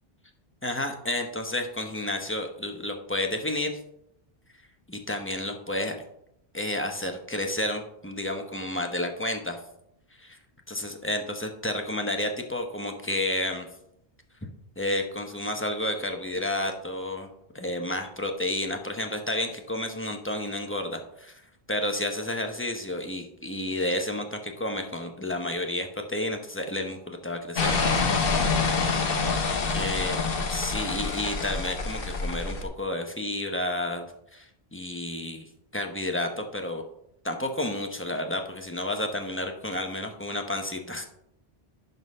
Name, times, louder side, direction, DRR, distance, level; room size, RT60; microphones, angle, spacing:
voice 1, 0.6-3.8 4.9-6.0 6.5-9.6 10.2-10.4 10.7-13.7 14.8-17.3 17.5-21.4 21.7-27.7 29.7-30.2 30.5-34.1 34.3-36.8 37.2-41.1, left 1 dB, 15° left, 4 dB, 0.9 m, -31 dB
sound 1, 27.6-32.6, left 4 dB, 60° left, 1.2 m, -26 dB
11.5 x 3.9 x 5.4 m, 0.78 s
omnidirectional pair, 1.1 m